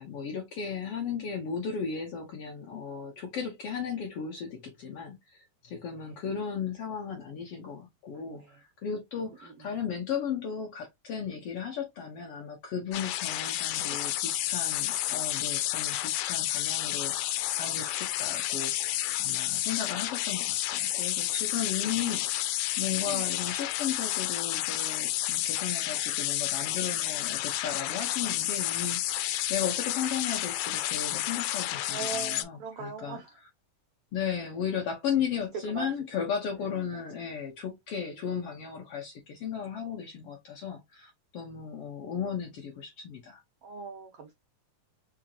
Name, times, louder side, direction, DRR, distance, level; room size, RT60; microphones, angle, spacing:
voice 1, 0.0-33.2 34.1-43.4, left 7 dB, 70° left, 1.4 m, -35 dB
voice 2, 8.1-8.5 9.4-9.5 13.8-14.2 15.1-15.2 21.8-21.9 23.0-23.2 31.9-33.3 35.7-35.9 36.6-36.8 38.0-38.2 43.6-44.3, right 6 dB, 80° right, 1.3 m, -41 dB
sound 1, 12.9-32.4, left 14 dB, 90° left, 2.1 m, -30 dB
4.9 x 2.5 x 2.8 m
omnidirectional pair, 3.6 m